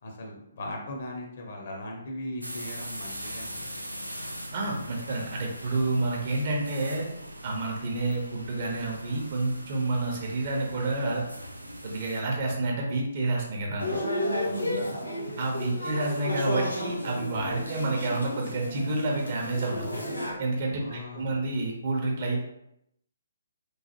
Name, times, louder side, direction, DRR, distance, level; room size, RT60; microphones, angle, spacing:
voice 1, 0.0-3.7 14.4-15.0 20.7-21.4, left 1 dB, 45° left, 0 dB, 0.6 m, -39 dB
sound 1, 2.4-12.2, equal, 85° right, 0.4 m, -41 dB
voice 2, 4.5-7.1 7.4-11.2 11.8-13.9 15.4-20.0 20.4-22.4, right 2 dB, 40° right, -1 dB, 0.6 m, -29 dB
sound 2, 13.8-20.3, left 1 dB, 85° left, 0.7 m, -32 dB
3.0 x 2.0 x 2.9 m, 0.80 s
figure-of-eight pair, 135°, 0 cm